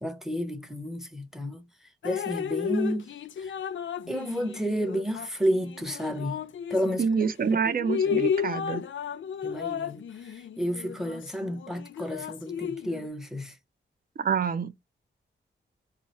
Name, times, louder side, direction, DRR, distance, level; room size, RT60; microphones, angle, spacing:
voice 1, 0.0-1.6 2.0-3.6 4.1-6.4 6.7-7.1 8.0-8.3 9.4-13.6, equal, ahead, 0.7 m, -31 dB
Drip, 2.0-7.3 7.7-13.1, left 7 dB, 80° left, 0.5 m, -33 dB
voice 2, 7.0-8.8 14.2-14.7, right 6 dB, 50° right, 0.6 m, -26 dB
4.3 x 2.4 x 4.2 m
wide cardioid pair, 140°, 20 cm